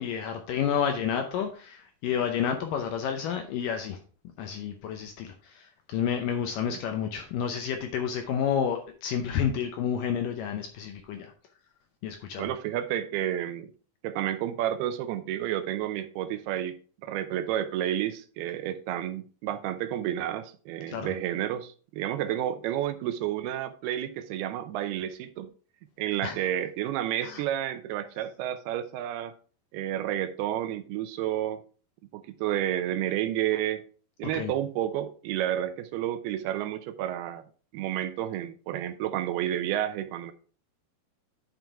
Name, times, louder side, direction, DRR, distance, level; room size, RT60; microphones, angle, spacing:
voice 1, 0.0-4.0 4.4-11.3 12.0-12.5 20.9-21.1 26.2-26.4 27.2-27.4 34.3-34.5, left 8 dB, 75° left, 2.0 m, -30 dB
voice 2, 12.4-13.7 14.0-16.8 17.0-25.5 26.0-29.3 29.7-31.6 32.1-33.8 34.2-37.4 37.7-40.3, right 11 dB, 80° right, 2.6 m, -30 dB
9.1 x 5.9 x 3.4 m
omnidirectional pair, 4.6 m